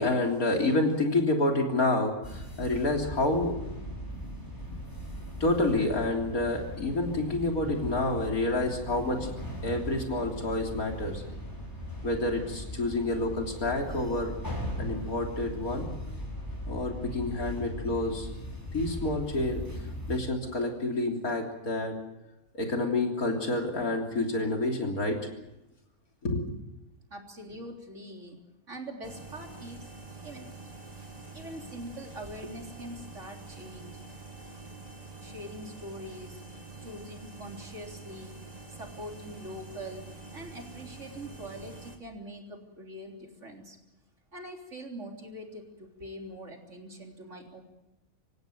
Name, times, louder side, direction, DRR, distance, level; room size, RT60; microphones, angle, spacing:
voice 1, 0.0-3.6 5.4-9.3 9.6-11.2 12.0-14.4 14.8-15.9 16.7-18.3 18.7-19.7 20.1-22.0 22.5-25.2 26.2-26.6, left 2 dB, 90° left, 2 dB, 3.9 m, -28 dB
sound 1, 2.2-20.2, equal, 15° left, 5.5 m, -39 dB
voice 2, 27.1-28.4 28.7-29.9 30.2-30.5 31.3-33.9 35.2-36.4 36.8-38.3 38.7-40.0 40.3-43.8 44.3-47.6, equal, 55° right, 2 dB, 3.9 m, -43 dB
sound 2, 29.0-42.0, right 3 dB, 25° right, 2.5 m, -46 dB
26.5 x 16.0 x 9.1 m, 0.95 s
omnidirectional pair, 1.5 m